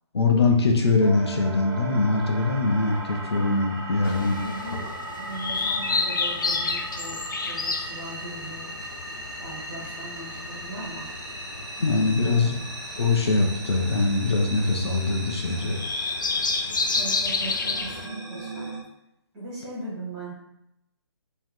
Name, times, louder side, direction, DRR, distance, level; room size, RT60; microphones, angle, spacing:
voice 1, 0.1-4.4 11.8-12.6 13.0-15.8, left 3 dB, 65° left, 2 dB, 1.3 m, -22 dB
sound 1, 1.0-18.8, right 2 dB, 40° right, 1.5 m, -38 dB
sound 2, 4.0-18.1, left 4 dB, 45° left, 0.5 m, -31 dB
voice 2, 4.0-8.7 9.4-11.1 12.2-12.5 16.9-18.7 19.3-20.3, right 2 dB, 10° right, -10 dB, 1.3 m, -39 dB
7.8 x 3.6 x 3.8 m, 0.84 s
hypercardioid pair, 180°, 15 cm